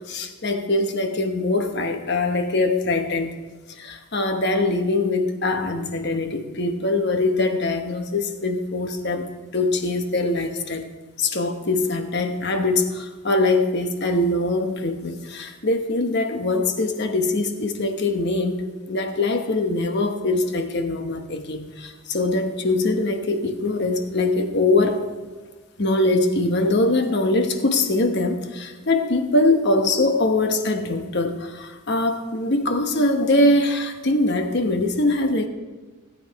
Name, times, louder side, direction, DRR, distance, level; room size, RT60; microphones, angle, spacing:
voice 1, 0.0-3.3 3.8-9.3 9.5-10.9 11.2-18.6 18.9-25.0 25.8-35.5, left 2 dB, 50° left, 6 dB, 1.1 m, -22 dB
17.0 x 9.0 x 4.7 m, 1.3 s
head